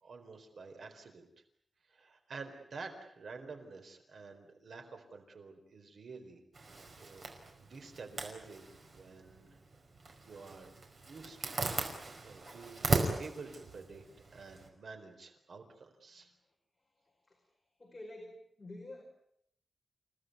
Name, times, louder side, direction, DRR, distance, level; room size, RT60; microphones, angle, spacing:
voice 1, 0.0-1.3 1.9-6.6 7.0-7.3 7.6-9.6 10.3-10.7 11.1-11.6 11.9-14.0 14.3-16.3, right 4 dB, 60° right, 5 dB, 4.1 m, -49 dB
Zipper (clothing), 6.5-14.7, right 3 dB, 45° right, 5.1 m, -38 dB
voice 2, 17.8-19.0, left 1 dB, 20° left, 0 dB, 5.1 m, -48 dB
29.5 x 18.0 x 9.4 m, 0.72 s
wide cardioid pair, 180°, 0 cm